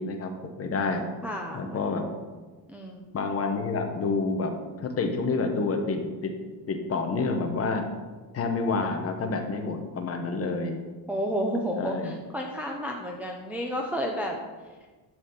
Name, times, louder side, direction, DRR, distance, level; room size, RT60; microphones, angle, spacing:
voice 1, 0.0-1.0 1.5-2.1 3.1-6.3 6.7-7.9 8.3-10.8 11.8-12.1, left 3 dB, 30° left, 4 dB, 1.0 m, -28 dB
voice 2, 1.2-1.8 2.7-3.1 11.1-14.4, equal, 5° right, -1 dB, 0.5 m, -31 dB
11.0 x 4.1 x 7.1 m, 1.3 s
cardioid pair, 175°, 46 cm